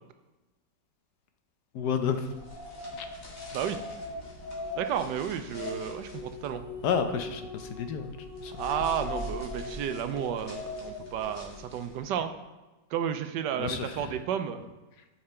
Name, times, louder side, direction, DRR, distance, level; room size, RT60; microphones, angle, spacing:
voice 1, 1.7-2.3 3.0-3.1 6.8-8.5 13.6-14.1, left 7 dB, 70° left, 7 dB, 1.2 m, -31 dB
sound 1, 2.2-12.1, left 2 dB, 50° left, 2.0 m, -41 dB
sound 2, 4.2-12.0, left 3 dB, 25° right, 1.3 m, -45 dB
voice 2, 4.8-6.6 8.6-12.3 12.9-14.6, right 9 dB, 80° right, 9 dB, 1.2 m, -32 dB
8.6 x 5.9 x 4.3 m, 1.1 s
omnidirectional pair, 1.9 m